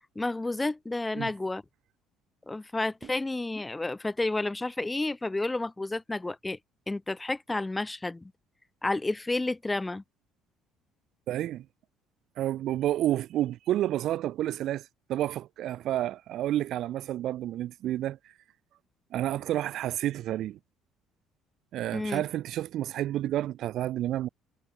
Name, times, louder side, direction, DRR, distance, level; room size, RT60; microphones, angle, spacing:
voice 1, 0.1-1.6 2.5-6.6 6.9-8.3 8.8-10.0 21.9-22.2, left 2 dB, 15° left, 2.6 m, -31 dB
voice 2, 11.3-11.6 12.4-18.2 19.1-20.6 21.7-24.3, right 13 dB, 65° right, 0.6 m, -30 dB
supercardioid pair, 80°, 0 cm